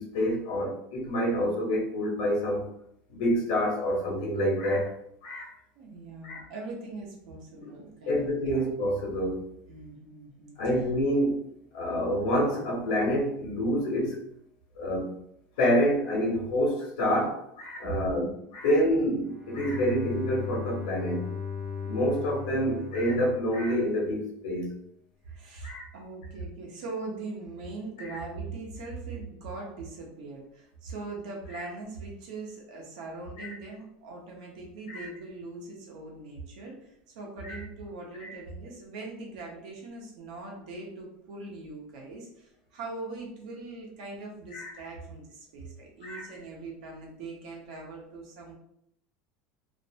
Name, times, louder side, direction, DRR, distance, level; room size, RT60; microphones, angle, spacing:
voice 1, 0.0-2.7 3.1-4.9 5.2-5.5 6.2-6.4 7.6-7.7 8.0-9.5 10.6-11.4 11.7-14.2 14.7-15.2 15.6-21.3 21.8-24.7 25.6-25.8 28.0-28.2 31.5-31.6 33.4-33.5 34.9-35.1 37.4-37.6 38.2-38.3 44.5-44.7 46.0-46.3, equal, 85° left, -1 dB, 0.9 m, -27 dB
voice 2, 5.7-8.7 9.7-10.6 17.8-18.3 25.2-48.5, right 3 dB, 85° right, -1 dB, 0.9 m, -41 dB
Bowed string instrument, 19.2-24.2, left 6 dB, ahead, 0.3 m, -37 dB
2.6 x 2.1 x 2.7 m, 0.74 s
cardioid pair, 175°, 4 cm